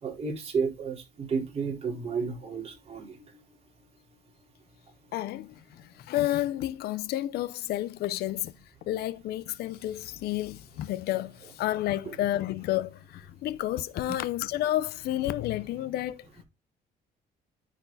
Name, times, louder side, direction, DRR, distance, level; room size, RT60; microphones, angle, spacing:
voice 1, 0.0-3.9, right 5 dB, 35° right, 4.0 m, -32 dB
voice 2, 5.1-8.5 8.9-16.3, left 14 dB, 70° left, 0.6 m, -31 dB
9.9 x 4.3 x 4.0 m
cardioid pair, 110°, 17 cm